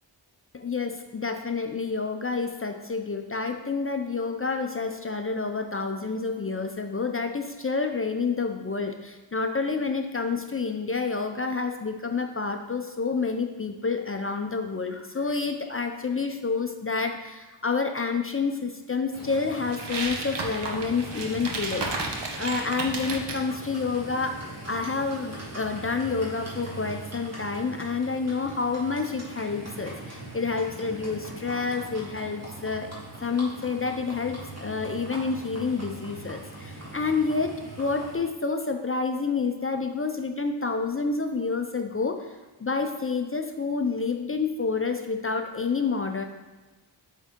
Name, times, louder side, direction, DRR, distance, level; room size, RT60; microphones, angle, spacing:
voice 1, 0.5-24.4 24.7-32.9 33.2-42.4 42.6-46.2, left 4 dB, 30° left, 4 dB, 0.5 m, -29 dB
Livestock farm animals working animals, 19.1-38.1, right 2 dB, 35° right, 1.9 m, -41 dB
sound 1, 19.7-23.4, right 3 dB, 60° right, 1.0 m, -33 dB
8.1 x 3.7 x 3.6 m, 1.2 s
wide cardioid pair, 65°, 46 cm